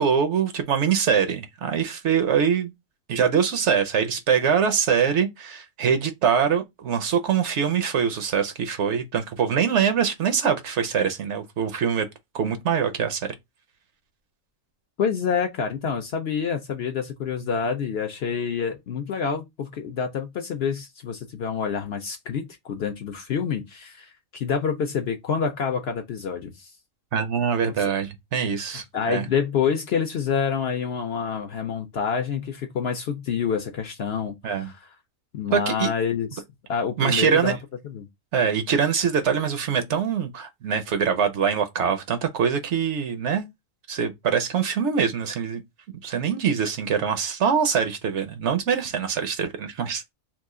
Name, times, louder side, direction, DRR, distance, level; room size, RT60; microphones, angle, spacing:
voice 1, 0.0-2.7 3.1-12.1 12.3-13.3 27.1-29.2 34.4-34.7 35.5-35.9 37.0-37.5 38.3-43.5 43.9-45.6 46.0-50.0, right 7 dB, 65° right, 0.9 m, -23 dB
voice 2, 15.0-26.7 28.7-34.8 35.3-36.4 36.7-37.6 37.8-38.1, left 6 dB, 60° left, 0.7 m, -27 dB
3.0 x 2.4 x 3.5 m
omnidirectional pair, 1.4 m